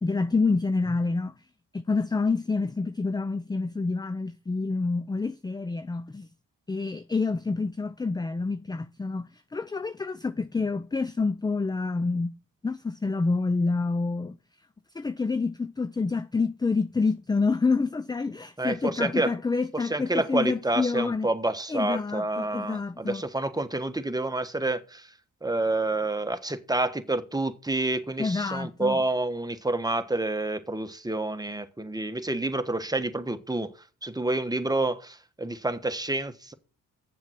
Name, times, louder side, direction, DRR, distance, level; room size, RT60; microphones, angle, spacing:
voice 1, 0.0-1.3 1.7-6.3 6.7-12.4 12.6-14.4 14.9-21.3 21.7-23.2 28.2-29.0, left 4 dB, 10° left, 0.4 m, -28 dB
voice 2, 18.6-19.3 19.7-25.1 25.4-33.7 34.0-36.5, right 2 dB, 10° right, 1.2 m, -28 dB
7.6 x 7.3 x 5.9 m
supercardioid pair, 55°, 35 cm